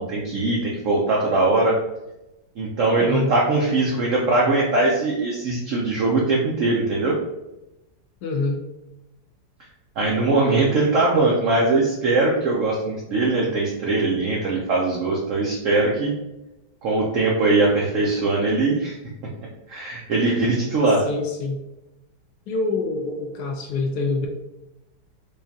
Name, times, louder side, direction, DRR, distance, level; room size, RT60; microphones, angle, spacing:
voice 1, 0.0-1.8 2.6-7.2 10.0-16.1 16.8-19.0 19.7-21.0, right 2 dB, 75° right, -2 dB, 0.7 m, -21 dB
voice 2, 3.0-3.3 8.2-8.6 21.1-21.6 22.5-24.3, left 3 dB, 75° left, 3 dB, 1.0 m, -25 dB
5.1 x 2.4 x 2.7 m, 0.94 s
omnidirectional pair, 2.0 m